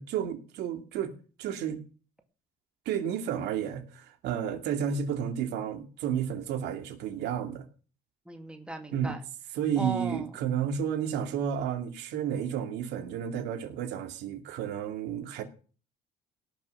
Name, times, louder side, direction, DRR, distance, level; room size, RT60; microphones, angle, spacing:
voice 1, 0.0-1.8 2.9-7.6 8.9-9.1 9.6-15.4, right 8 dB, 85° right, 2.6 m, -32 dB
voice 2, 8.3-9.2 9.8-10.3, right 2 dB, 5° right, 2.3 m, -37 dB
18.0 x 6.3 x 6.5 m
cardioid pair, 110°, 17 cm